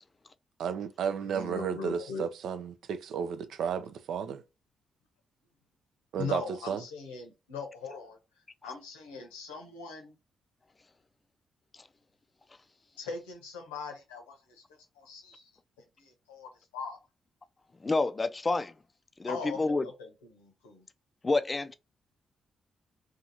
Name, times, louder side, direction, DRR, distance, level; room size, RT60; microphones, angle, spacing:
voice 1, 0.6-4.4 6.1-6.4 6.7-6.8, right 7 dB, 70° right, 0.3 m, -33 dB
voice 2, 1.2-2.3 6.2-8.2 8.6-10.1 13.0-14.6 14.9-15.5 16.0-17.0 19.3-20.8, left 4 dB, 90° left, 0.7 m, -40 dB
voice 3, 17.8-18.7 19.2-19.8 21.2-21.8, left 3 dB, 35° left, 0.3 m, -28 dB
2.7 x 2.3 x 2.8 m
hypercardioid pair, 40°, 0 cm